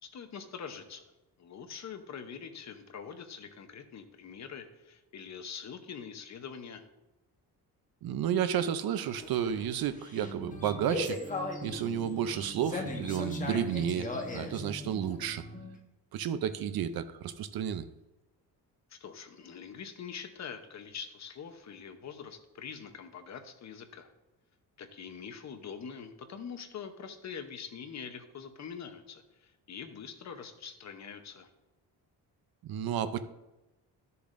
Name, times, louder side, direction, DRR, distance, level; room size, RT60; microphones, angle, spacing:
voice 1, 0.0-1.0 1.4-6.8 18.9-24.1 24.8-31.5, left 6 dB, 45° left, 7 dB, 0.9 m, -44 dB
voice 2, 8.0-11.2 11.6-15.4 16.1-17.8 32.6-33.2, right 9 dB, 65° right, 12 dB, 0.6 m, -32 dB
sound 1, 8.9-15.8, left 2 dB, 20° left, 1.1 m, -39 dB
13.0 x 6.8 x 2.6 m, 1.0 s
cardioid pair, 150°, 39 cm